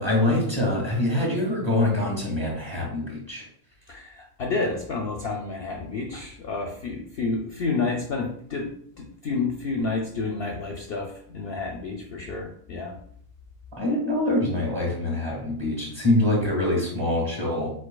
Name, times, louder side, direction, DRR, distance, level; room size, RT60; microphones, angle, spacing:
voice 1, 0.0-3.5 13.7-17.7, left 1 dB, 20° right, -3 dB, 1.6 m, -24 dB
voice 2, 3.9-8.7 9.0-13.0, left 3 dB, 60° left, 1 dB, 0.7 m, -30 dB
5.0 x 4.1 x 2.2 m, 0.63 s
omnidirectional pair, 1.4 m